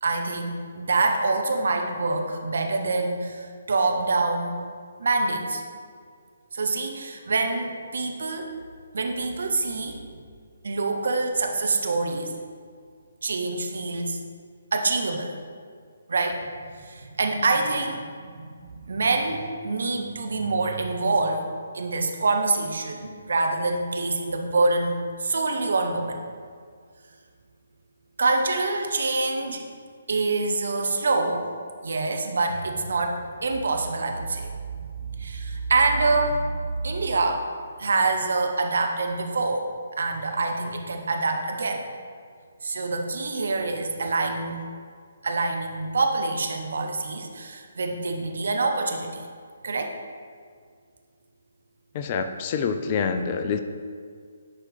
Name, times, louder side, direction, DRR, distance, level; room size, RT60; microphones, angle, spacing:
voice 1, 0.0-4.5 5.0-5.6 6.5-8.5 8.9-10.0 10.6-12.3 13.2-14.2 14.7-15.3 16.1-16.4 16.7-21.4 21.7-26.2 28.2-29.6 30.1-31.5 31.8-34.5 35.0-36.6 36.8-37.4 37.8-39.7 40.0-41.8 42.6-44.6 45.2-49.3 49.6-49.9, right 3 dB, 55° right, 3 dB, 0.9 m, -26 dB
voice 2, 51.9-53.6, left 6 dB, 30° left, 8 dB, 0.4 m, -26 dB
10.5 x 4.3 x 4.0 m, 2.1 s
figure-of-eight pair, 135°, 0 cm